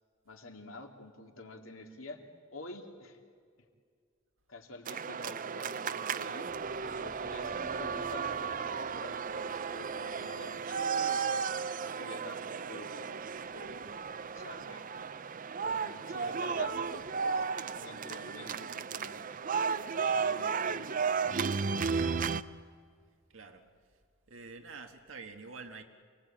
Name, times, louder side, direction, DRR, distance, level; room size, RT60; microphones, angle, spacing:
voice 1, 0.2-2.2 2.5-3.2 4.5-11.3 11.8-14.9 15.6-17.5 17.7-19.2 19.7-21.3, left 2 dB, 90° left, 2 dB, 2.9 m, -49 dB
sound 1, 4.9-22.4, right 5 dB, 40° right, 0.6 m, -34 dB
sound 2, 6.5-14.7, equal, 5° right, 1.7 m, -55 dB
voice 2, 23.3-24.0 24.3-25.8, right 4 dB, 75° right, 4 dB, 1.7 m, -47 dB
28.0 x 19.5 x 8.8 m, 2.1 s
head